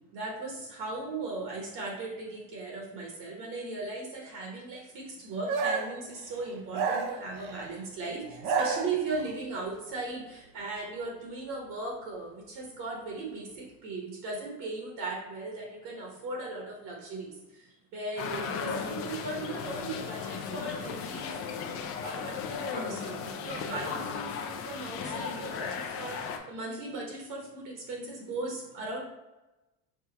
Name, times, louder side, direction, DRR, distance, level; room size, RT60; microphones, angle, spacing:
voice 1, 0.1-29.0, right 3 dB, 50° right, -1 dB, 1.2 m, -38 dB
sound 1, 5.5-6.0 6.7-7.7 8.3-9.3, right 5 dB, 80° right, 0.7 m, -30 dB
sound 2, 18.2-26.4, left 6 dB, 35° left, 0.4 m, -36 dB
4.9 x 2.3 x 4.0 m, 1.0 s
cardioid pair, 140°, 39 cm